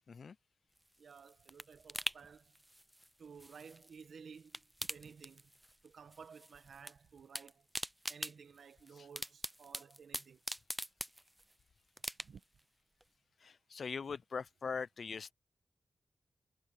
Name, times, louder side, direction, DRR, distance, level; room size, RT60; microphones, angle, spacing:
sound 1, 0.8-4.1 4.4-5.9 6.1-6.9 7.2-11.5 12.0-12.6 13.0-13.1, right 1 dB, 10° right, 0.5 m, -44 dB
voice 1, 1.0-2.5 3.2-5.5 5.8-7.7 8.1-10.4 12.2-12.4, right 6 dB, 85° right, 1.6 m, -55 dB
voice 2, 13.4-15.3, left 5 dB, 70° left, 0.4 m, -41 dB
cardioid pair, 70°, 0 cm